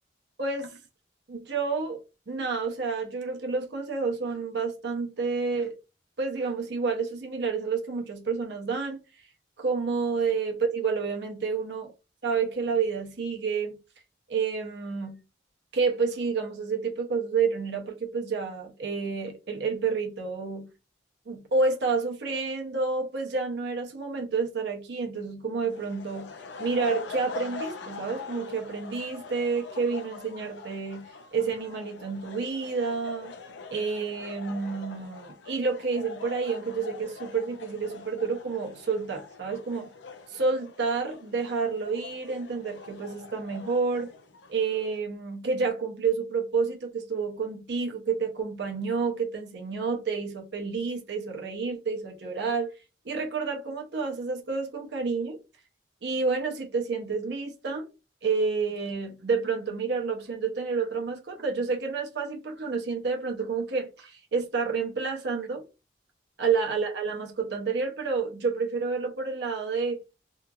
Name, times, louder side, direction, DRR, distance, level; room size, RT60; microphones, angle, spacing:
voice 1, 0.4-0.8 1.3-5.7 6.2-9.0 9.6-11.9 12.2-13.8 14.3-15.2 15.7-20.7 21.3-26.3 26.6-33.3 33.7-39.9 40.3-44.1 44.5-52.7 53.0-55.4 56.0-57.9 58.2-65.6 66.4-70.0, right 4 dB, 60° right, 0.7 m, -29 dB
sound 1, 25.6-45.0, left 4 dB, 65° left, 0.5 m, -43 dB
2.8 x 2.4 x 2.4 m
head